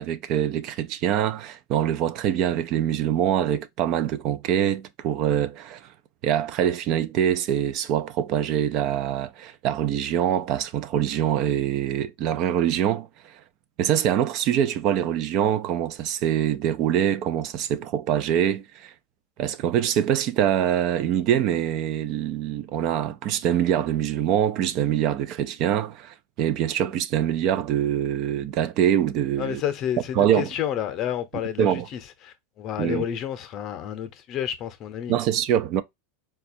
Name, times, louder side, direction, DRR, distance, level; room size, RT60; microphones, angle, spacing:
voice 1, 0.0-5.8 6.2-13.1 13.8-18.9 19.4-29.6 30.2-30.5 31.6-31.9 32.8-33.0 35.1-35.8, right 10 dB, 50° right, 0.4 m, -24 dB
voice 2, 29.4-35.1, left 10 dB, 45° left, 0.7 m, -30 dB
4.1 x 2.3 x 2.6 m
hypercardioid pair, 110°, 0 cm